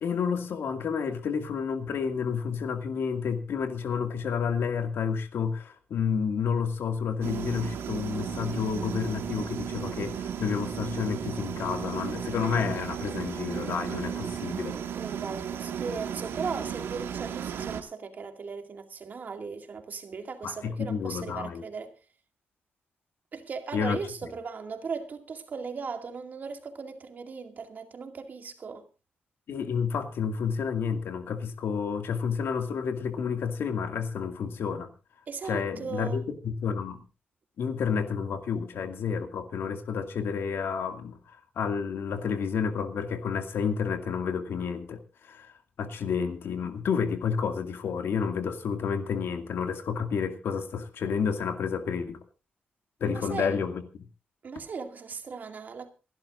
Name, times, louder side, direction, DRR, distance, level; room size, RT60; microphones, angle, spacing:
voice 1, 0.0-14.8 20.4-21.6 23.7-24.0 29.5-34.9 35.5-37.0 37.6-45.5 45.8-52.2 53.0-53.8, left 6 dB, 75° left, 2.2 m, -30 dB
sound 1, 7.2-17.8, right 8 dB, 85° right, 1.8 m, -35 dB
voice 2, 14.9-21.9 23.3-28.9 35.3-36.2 53.1-53.6 54.4-55.9, right 5 dB, 45° right, 2.2 m, -37 dB
27.0 x 12.0 x 2.5 m
wide cardioid pair, 130°, 4 cm